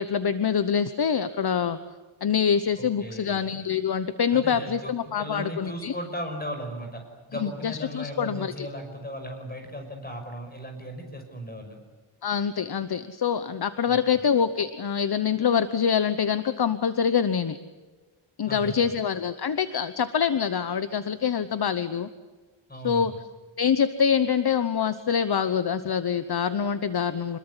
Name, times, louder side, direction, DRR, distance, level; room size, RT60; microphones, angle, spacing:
voice 1, 0.0-1.8 2.2-5.9 7.4-8.7 12.2-17.6 18.4-22.1 22.8-23.1 23.6-27.4, left 7 dB, 50° left, 12 dB, 1.0 m, -25 dB
voice 2, 2.8-3.5 4.3-7.0 7.3-11.8 13.9-14.2 18.5-19.0 22.7-23.2, equal, 20° left, 5 dB, 5.9 m, -37 dB
26.5 x 21.5 x 9.9 m, 1.3 s
wide cardioid pair, 150°, 49 cm